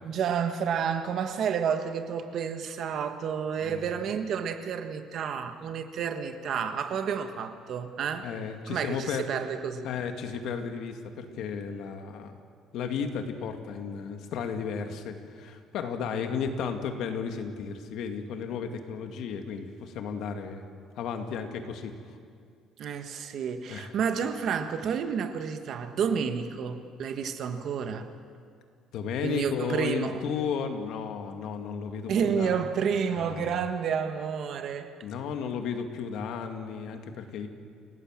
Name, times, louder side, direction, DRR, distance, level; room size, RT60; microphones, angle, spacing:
voice 1, 0.0-8.3 8.7-9.9 22.8-28.1 29.2-30.2 32.1-34.9, right 7 dB, 50° right, 8 dB, 1.5 m, -30 dB
voice 2, 3.6-3.9 8.2-9.2 9.8-12.4 12.7-20.6 21.0-22.2 23.7-23.9 28.9-32.7 33.2-33.5 35.0-37.5, left 6 dB, 65° left, 5 dB, 2.2 m, -34 dB
29.0 x 18.0 x 7.6 m, 2.2 s
cardioid pair, 160°, 0 cm